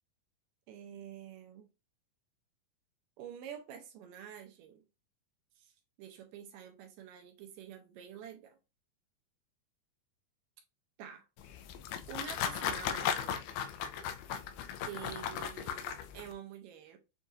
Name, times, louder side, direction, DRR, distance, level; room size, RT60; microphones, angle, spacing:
voice 1, 0.7-1.7 3.2-4.8 5.6-5.7 6.0-8.6 11.0-11.3 12.1-13.4 14.9-17.0, right 9 dB, 80° right, 2.0 m, -47 dB
sound 1, 11.4-16.3, left 8 dB, 85° left, 2.5 m, -37 dB
7.0 x 2.8 x 2.5 m
omnidirectional pair, 4.3 m